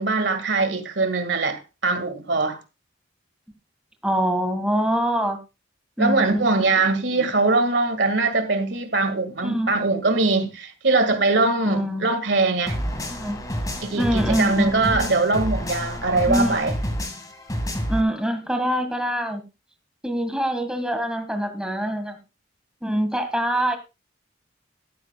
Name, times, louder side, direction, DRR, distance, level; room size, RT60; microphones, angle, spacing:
voice 1, 0.0-2.6 6.0-12.8 13.8-16.7, right 3 dB, 65° right, 2.0 m, -22 dB
voice 2, 4.0-5.4 6.0-7.3 9.4-9.8 11.7-12.1 13.1-13.4 13.9-15.1 16.3-16.7 17.9-19.4 20.0-22.2 22.8-23.8, equal, 5° right, 1.8 m, -25 dB
sound 1, 12.7-18.0, equal, 20° left, 2.0 m, -29 dB
13.5 x 12.5 x 2.3 m
head